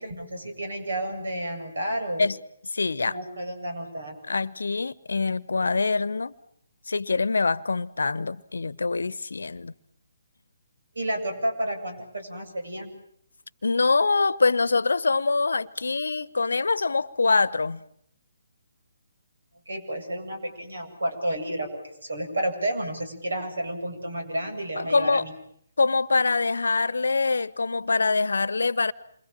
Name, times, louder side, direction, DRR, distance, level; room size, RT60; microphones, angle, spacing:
voice 1, 0.0-2.3 3.0-4.1 10.9-12.9 19.7-21.7 22.0-25.3, right 1 dB, 75° right, 7.9 m, -31 dB
voice 2, 2.6-3.2 4.3-6.3 6.9-9.7 13.6-17.8 24.8-25.3 25.8-28.9, left 4 dB, 70° left, 1.0 m, -24 dB
28.5 x 25.5 x 7.6 m
figure-of-eight pair, 140°, 0 cm